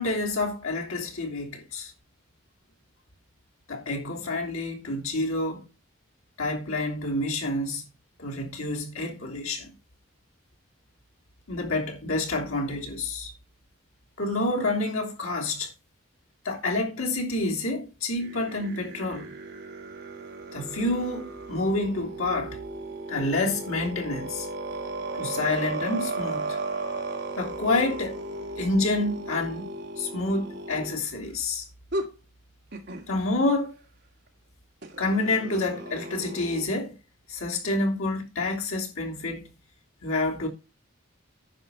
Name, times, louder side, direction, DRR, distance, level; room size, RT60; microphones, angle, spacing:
voice 1, 0.0-1.9 3.7-5.6 6.4-7.8 8.2-9.7 11.5-13.3 14.2-15.7 16.4-19.3 20.5-22.6 23.1-24.5 25.1-26.6 27.4-28.2 28.6-29.7 30.0-31.7 33.1-33.8 35.0-36.9 37.3-39.5 40.0-40.5, left 2 dB, 85° left, 3.1 m, -28 dB
sound 1, 18.2-31.0 31.9-32.1 32.7-33.1 34.8-36.7, right 2 dB, 50° right, 2.2 m, -35 dB
10.0 x 6.3 x 5.5 m
head